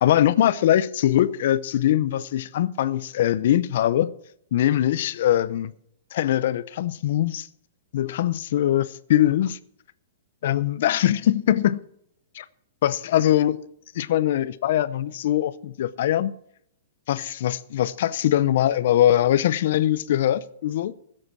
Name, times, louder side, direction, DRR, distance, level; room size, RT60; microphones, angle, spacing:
voice 1, 0.0-4.1 4.5-5.7 6.1-7.5 7.9-9.6 10.4-11.8 12.3-12.4 12.8-13.6 13.9-16.3 17.1-20.9, left 12 dB, 45° left, 0.6 m, -22 dB
16.0 x 7.7 x 6.2 m
hypercardioid pair, 175°, 0 cm